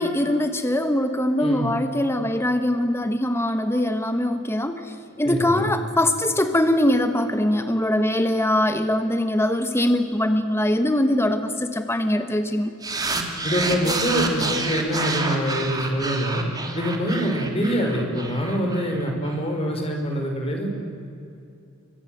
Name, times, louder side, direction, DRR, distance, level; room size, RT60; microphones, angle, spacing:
voice 1, 0.0-12.7, left 1 dB, 10° left, 8 dB, 1.2 m, -22 dB
voice 2, 1.4-1.7 5.2-5.7 13.4-16.4 16.7-20.7, equal, 30° left, 2 dB, 5.5 m, -25 dB
sound 1, 12.8-19.3, right 3 dB, 20° right, 2.8 m, -28 dB
30.0 x 24.5 x 7.9 m, 2.6 s
head